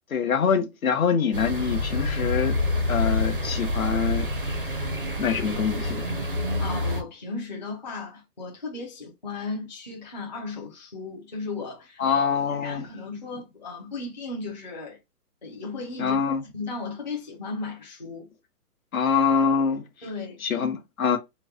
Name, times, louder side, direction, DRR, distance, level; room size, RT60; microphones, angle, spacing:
voice 1, 0.1-2.5 2.9-4.6 5.2-6.0 12.0-12.9 16.0-16.4 18.9-20.1 20.4-21.2, left 6 dB, 60° left, 1.0 m, -25 dB
sound 1, 1.3-7.0, left 1 dB, 40° right, 0.4 m, -27 dB
voice 2, 6.3-12.1 12.5-15.0 15.4-16.2 16.4-18.3 20.0-20.4, left 3 dB, 30° left, 0.6 m, -36 dB
3.2 x 2.1 x 3.4 m
hypercardioid pair, 180°, 46 cm